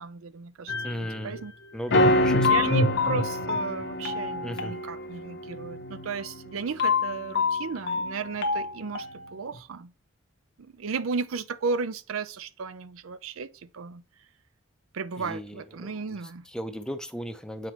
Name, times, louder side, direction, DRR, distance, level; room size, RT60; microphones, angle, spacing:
voice 1, 0.0-0.7 1.0-1.5 2.0-9.9 10.6-14.0 14.9-16.4, right 5 dB, 80° right, 0.5 m, -34 dB
sound 1, 0.7-1.4 1.9-9.4, left 2 dB, 55° left, 0.8 m, -26 dB
voice 2, 0.8-1.3 1.7-2.7 4.4-4.7 15.2-16.2 16.5-17.7, equal, 5° left, 0.5 m, -36 dB
7.5 x 5.1 x 3.1 m
head